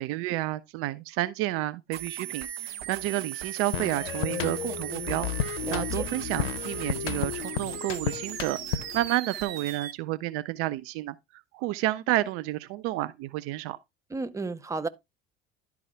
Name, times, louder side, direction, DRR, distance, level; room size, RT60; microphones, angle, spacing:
voice 1, 0.0-11.2 11.5-13.8, right 16 dB, 45° right, 0.4 m, -30 dB
sound 1, 1.9-9.9, right 12 dB, 70° right, 0.9 m, -38 dB
sound 2, 3.7-9.1, left 10 dB, 70° left, 0.7 m, -33 dB
voice 2, 5.6-6.0 14.1-14.9, right 3 dB, 10° right, 0.7 m, -33 dB
11.5 x 4.8 x 3.3 m
figure-of-eight pair, 65°, 31 cm